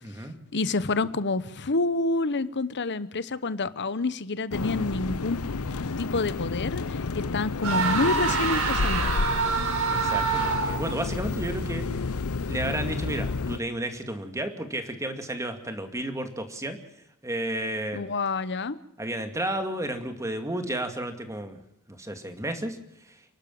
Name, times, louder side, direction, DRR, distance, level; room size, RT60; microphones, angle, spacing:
voice 1, 0.0-0.3 9.9-11.8 12.5-16.8 17.2-18.1 19.0-21.6 21.9-22.8, right 1 dB, 15° right, 6 dB, 2.4 m, -32 dB
voice 2, 0.5-5.4 6.0-9.1 17.9-18.8, left 3 dB, 55° left, 15 dB, 1.0 m, -28 dB
sound 1, 4.5-13.6, left 3 dB, 80° left, 0.8 m, -31 dB
sound 2, 7.6-11.0, right 4 dB, 75° right, 4.8 m, -26 dB
30.0 x 12.0 x 7.7 m, 0.76 s
head